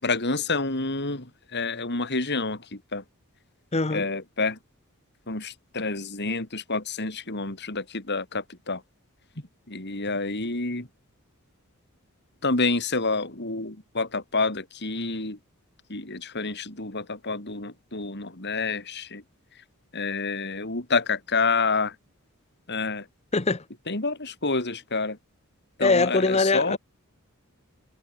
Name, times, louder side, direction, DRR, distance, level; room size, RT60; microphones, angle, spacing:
voice 1, 0.0-3.0 3.9-4.6 5.3-8.8 9.7-10.9 12.4-15.4 15.9-19.2 19.9-21.9 22.7-23.1 23.9-25.2 25.8-26.8, left 3 dB, 50° left, 4.0 m, -28 dB
voice 2, 3.7-4.1 23.3-23.6 25.8-26.8, left 3 dB, 30° left, 1.0 m, -22 dB
head